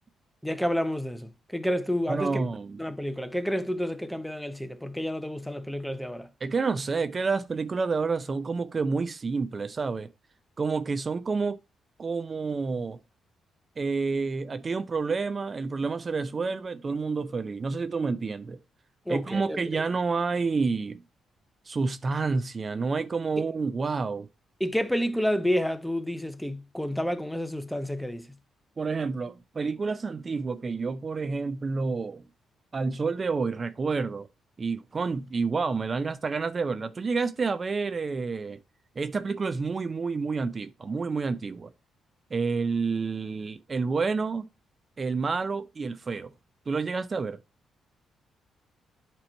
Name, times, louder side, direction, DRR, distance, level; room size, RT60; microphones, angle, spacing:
voice 1, 0.4-2.4 2.8-6.3 19.1-19.8 24.6-28.3, equal, ahead, 0.8 m, -30 dB
voice 2, 2.1-2.8 6.4-10.1 10.6-11.6 12.0-13.0 13.8-18.6 19.1-21.0 21.7-24.3 28.8-32.2 32.7-34.3 34.6-38.6 39.0-41.7 42.3-44.5 45.0-46.3 46.7-47.4, right 4 dB, 40° right, 0.4 m, -29 dB
8.8 x 3.0 x 4.3 m
supercardioid pair, 60°, 0 cm